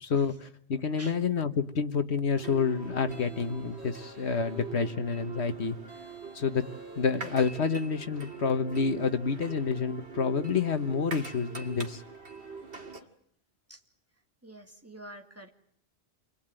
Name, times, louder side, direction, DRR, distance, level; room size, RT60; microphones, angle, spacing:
voice 1, 0.0-5.8 6.3-6.7 7.0-12.0, left 5 dB, 85° left, 9 dB, 1.6 m, -28 dB
sound 1, 2.3-13.0, right 5 dB, 85° right, 2.4 m, -43 dB
sound 2, 3.1-4.8 5.9-7.6, left 2 dB, 35° left, 6.1 m, -54 dB
voice 2, 14.4-15.5, right 1 dB, 15° right, 2 dB, 2.6 m, -47 dB
28.5 x 21.5 x 9.1 m, 0.67 s
omnidirectional pair, 1.1 m